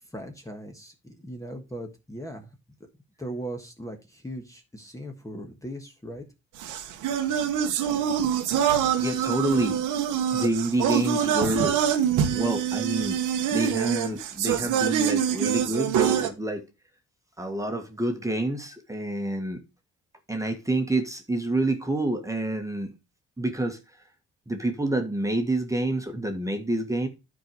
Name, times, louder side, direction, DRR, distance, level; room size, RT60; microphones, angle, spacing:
voice 1, 0.1-2.5 3.2-6.2, right 1 dB, 10° left, 1.4 m, -38 dB
sound 1, 6.6-16.3, right 9 dB, 90° right, 1.1 m, -25 dB
voice 2, 9.0-9.8 10.3-11.8 12.3-13.2 13.5-16.6 17.4-19.6 20.3-22.9 23.4-23.8 24.5-27.1, right 2 dB, 10° right, 1.5 m, -28 dB
10.0 x 4.7 x 4.7 m
cardioid pair, 90°, 30 cm